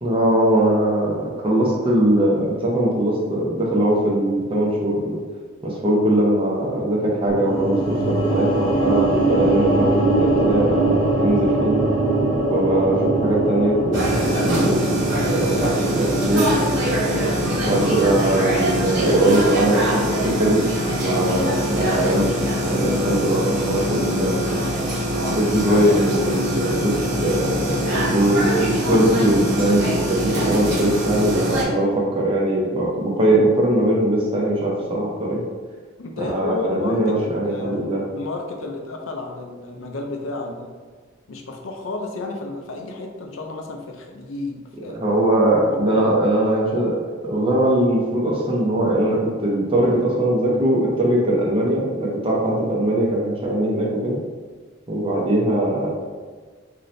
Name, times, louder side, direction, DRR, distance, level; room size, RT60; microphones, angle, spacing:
voice 1, 0.0-5.2 5.6-11.8 12.5-14.0 14.2-15.0 15.3-16.5 17.6-20.6 21.0-22.3 22.6-24.5 25.3-35.4 36.2-38.0 44.9-54.2 54.9-55.9, right 1 dB, 25° right, -4 dB, 0.6 m, -21 dB
sound 1, 7.3-19.5, right 2 dB, 25° left, 0.7 m, -22 dB
sound 2, 13.9-31.6, equal, 65° right, 1.0 m, -23 dB
voice 2, 36.0-40.7 41.3-45.0 45.6-46.1, left 2 dB, 75° left, 2 dB, 0.6 m, -31 dB
3.9 x 2.7 x 3.2 m, 1.5 s
head